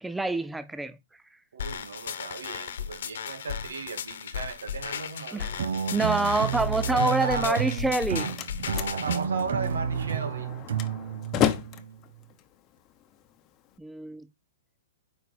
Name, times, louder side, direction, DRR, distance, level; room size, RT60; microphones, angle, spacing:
voice 1, 0.0-1.0 5.3-5.5 5.9-8.3 13.8-14.3, right 2 dB, 5° right, 0.4 m, -26 dB
voice 2, 1.5-5.6 6.9-7.6 8.9-10.5, right 4 dB, 85° right, 2.3 m, -35 dB
sound 1, 1.6-9.2, left 8 dB, 70° left, 1.2 m, -36 dB
sound 2, 5.6-12.0, right 8 dB, 70° right, 0.8 m, -31 dB
Slam, 7.8-13.8, left 11 dB, 30° left, 0.9 m, -33 dB
9.3 x 4.7 x 4.2 m
hypercardioid pair, 140°, 0 cm